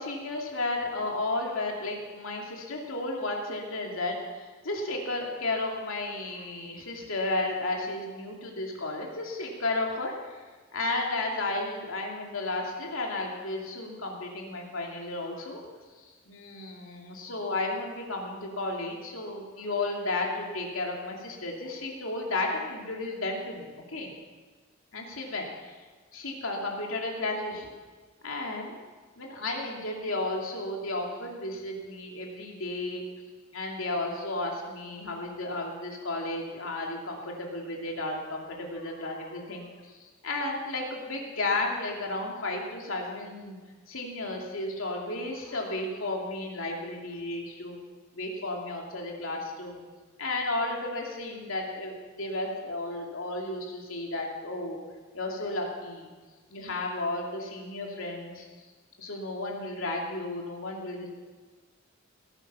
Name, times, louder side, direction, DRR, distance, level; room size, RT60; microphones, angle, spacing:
voice 1, 0.0-10.3 10.7-15.6 16.3-24.1 24.9-25.7 26.1-27.7 28.2-28.8 29.2-33.0 33.5-39.7 40.0-43.6 43.9-47.8 48.1-49.8 50.2-54.8 55.1-56.1 56.5-58.4 59.0-61.1, left 2 dB, 75° left, 0 dB, 2.7 m, -33 dB
18.0 x 9.2 x 5.7 m, 1.4 s
head